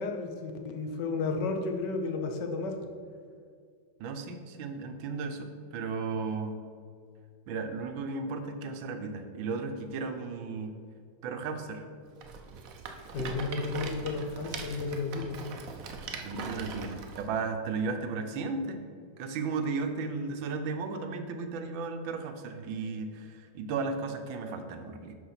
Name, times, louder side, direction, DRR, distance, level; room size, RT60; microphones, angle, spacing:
voice 1, 0.0-2.7 13.1-15.5, left 3 dB, 70° left, 4 dB, 1.4 m, -32 dB
voice 2, 4.0-6.6 7.5-10.7 11.2-11.9 16.2-18.8 19.2-25.1, right 4 dB, 85° right, 7 dB, 1.5 m, -35 dB
Rattle, 12.2-17.3, right 5 dB, 60° right, 0.9 m, -41 dB
6.3 x 5.5 x 5.7 m, 2.2 s
omnidirectional pair, 2.1 m